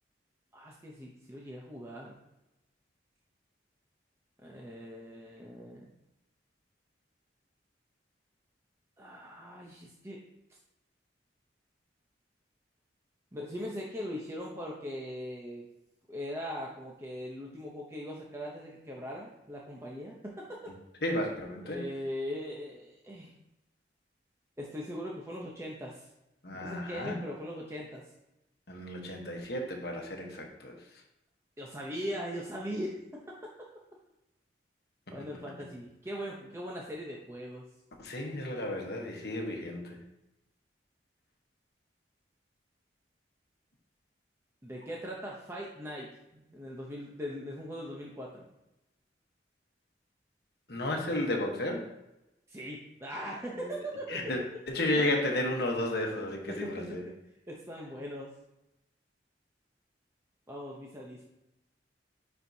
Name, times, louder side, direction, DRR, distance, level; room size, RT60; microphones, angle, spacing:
voice 1, 0.5-2.2 4.4-5.9 9.0-10.2 13.3-15.7 16.1-20.6 21.6-23.3 24.6-26.1 26.5-28.0 31.6-33.5 35.1-37.6 44.6-48.4 52.5-54.2 56.5-57.0 57.5-58.4 60.5-61.3, equal, 15° right, -3 dB, 0.7 m, -40 dB
voice 2, 21.0-21.8 26.4-27.2 28.7-30.7 38.0-40.0 50.7-51.8 53.6-53.7 54.1-54.4 54.7-57.0, left 1 dB, 60° left, 1 dB, 1.2 m, -33 dB
9.7 x 4.4 x 2.8 m, 0.93 s
head